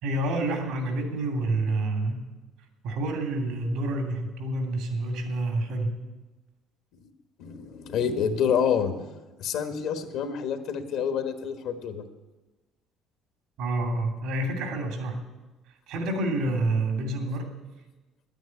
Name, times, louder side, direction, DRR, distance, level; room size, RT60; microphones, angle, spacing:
voice 1, 0.0-2.3 2.8-6.0 13.6-15.2 15.9-17.5, right 2 dB, 80° right, 4 dB, 2.8 m, -28 dB
voice 2, 7.4-12.0, left 7 dB, 70° left, 8 dB, 1.4 m, -28 dB
9.5 x 9.3 x 9.9 m, 1.1 s
cardioid pair, 95°, 0 cm